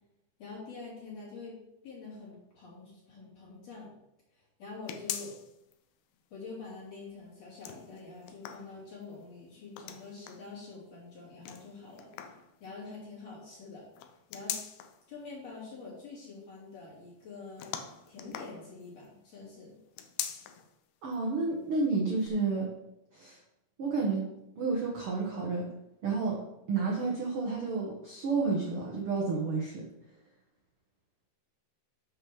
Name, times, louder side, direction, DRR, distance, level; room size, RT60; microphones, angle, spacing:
voice 1, 0.4-1.6 1.8-3.9 4.6-5.3 6.3-12.1 12.6-13.8 14.3-14.6 15.1-17.7 18.1-19.8, left 4 dB, 40° left, -6 dB, 3.9 m, -46 dB
sound 1, 4.9-5.7 6.1-6.2 7.4-9.1 9.7-10.5 11.4-12.5 13.9-15.0 17.6-19.1 19.9-20.7 21.1-21.2 22.2-22.3, left 9 dB, 85° left, 1.9 m, -41 dB
voice 2, 21.0-22.7 23.1-23.4 23.8-24.3 24.6-25.7 26.0-26.4 26.7-29.8, right 4 dB, 80° right, -2 dB, 1.2 m, -30 dB
7.7 x 5.7 x 6.1 m, 0.86 s
omnidirectional pair, 4.7 m